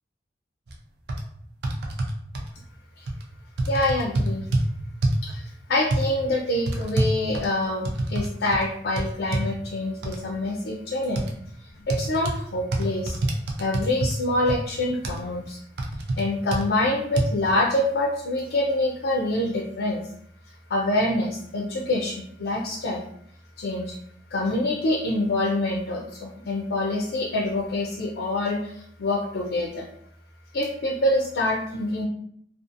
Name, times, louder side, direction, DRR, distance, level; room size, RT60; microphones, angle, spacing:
sound 1, 0.7-0.8 1.1-1.2 1.6-2.5 3.1-3.2 3.6-4.7 5.0-5.3 5.9-6.0 6.7-8.3 8.5-8.6 9.0-9.5 10.0-10.2 11.2-11.3 11.9-12.4 12.7-14.1 14.5-14.6 15.0-15.2 15.8-16.2 16.5-16.6 17.2-17.3, right 2 dB, 60° right, 0.4 m, -26 dB
voice 1, 3.7-4.5 5.2-11.3 11.6-13.2 13.6-15.6 16.2-20.1 20.7-23.0 23.6-24.0 24.3-29.9 30.5-32.0, left 1 dB, 65° left, 0 dB, 0.4 m, -26 dB
2.5 x 2.3 x 2.5 m, 0.68 s
head